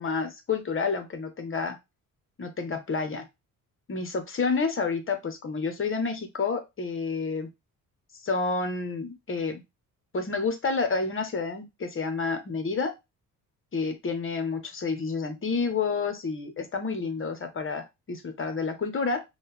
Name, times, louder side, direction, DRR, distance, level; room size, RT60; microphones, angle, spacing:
voice 1, 0.0-1.8 2.4-3.2 3.9-7.5 8.2-9.6 10.1-12.9 13.7-19.2, left 4 dB, 35° left, 7 dB, 1.1 m, -29 dB
5.3 x 2.4 x 3.4 m, 0.22 s
cardioid pair, 105°, 36 cm